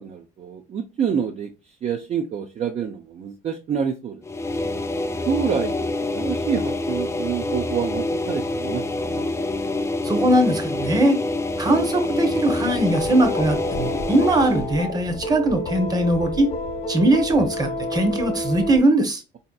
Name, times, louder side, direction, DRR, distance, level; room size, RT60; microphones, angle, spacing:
voice 1, 0.0-1.5 1.8-4.2 5.3-5.8 6.1-9.3, right 7 dB, 40° right, 4 dB, 0.5 m, -27 dB
sound 1, 4.2-14.7, left 2 dB, 15° left, 0.4 m, -26 dB
voice 2, 10.0-11.2 11.6-16.5 16.9-19.2, right 1 dB, 25° right, 5 dB, 0.9 m, -20 dB
sound 2, 12.6-18.8, left 1 dB, 35° left, 0.7 m, -30 dB
4.2 x 2.7 x 2.3 m, 0.29 s
cardioid pair, 110°, 17 cm